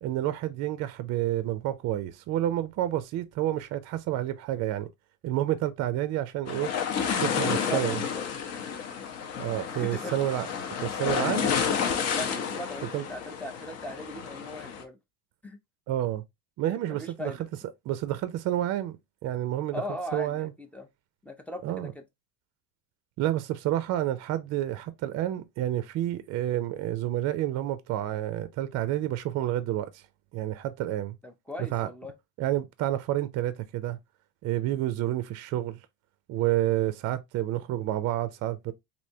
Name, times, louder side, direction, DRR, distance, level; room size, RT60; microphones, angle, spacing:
voice 1, 0.0-4.9 5.2-6.7 7.2-8.0 9.4-10.5 10.8-11.5 12.9-13.0 15.9-16.2 16.6-17.3 17.9-19.0 19.2-19.8 20.1-20.5 21.6-21.9 23.2-30.0 30.3-31.1 31.7-31.9 32.4-34.0 34.4-35.8 36.3-38.7, right 13 dB, 50° right, 0.5 m, -29 dB
sound 1, 6.5-14.8, left 7 dB, 45° left, 0.7 m, -30 dB
voice 2, 7.2-8.4 9.7-10.3 11.2-11.3 12.1-15.0 15.4-15.6 16.9-17.4 19.7-20.9 21.2-22.0 31.2-32.1, left 1 dB, 5° left, 0.5 m, -39 dB
3.3 x 2.7 x 2.7 m
cardioid pair, 120°, 34 cm